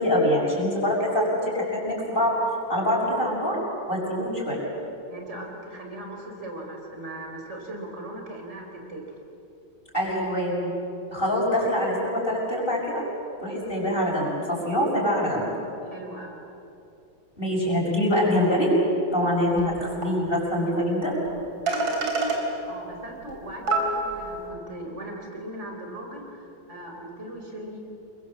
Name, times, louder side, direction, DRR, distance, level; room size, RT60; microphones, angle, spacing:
voice 1, 0.0-2.4 2.7-3.6 3.9-4.6 9.9-10.7 11.1-13.0 13.4-15.5 17.4-18.7 19.1-21.1, left 1 dB, 25° left, -5 dB, 6.5 m, -24 dB
voice 2, 5.1-9.0 15.8-16.4 22.7-27.8, right 1 dB, 35° right, 1 dB, 4.9 m, -39 dB
sound 1, 19.6-19.7 20.0-20.1 21.3-21.4 21.7-22.4 23.3-23.4 23.7-24.4, right 3 dB, 80° right, 4.6 m, -25 dB
28.0 x 23.5 x 7.6 m, 2.7 s
omnidirectional pair, 2.1 m